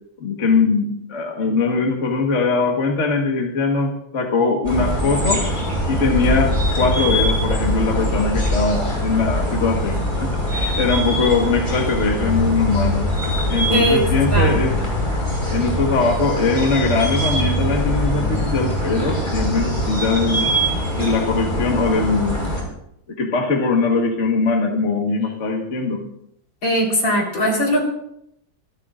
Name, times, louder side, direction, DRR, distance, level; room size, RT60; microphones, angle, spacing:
voice 1, 0.2-5.5 5.9-13.0 13.5-14.8 15.5-20.5 21.0-22.5 23.2-26.0, left 4 dB, 40° left, 1 dB, 1.7 m, -21 dB
sound 1, 4.6-22.6, equal, 25° left, 5.9 m, -22 dB
voice 2, 26.6-27.8, equal, 70° left, -1 dB, 4.9 m, -19 dB
26.5 x 13.0 x 2.5 m, 0.75 s
omnidirectional pair, 2.1 m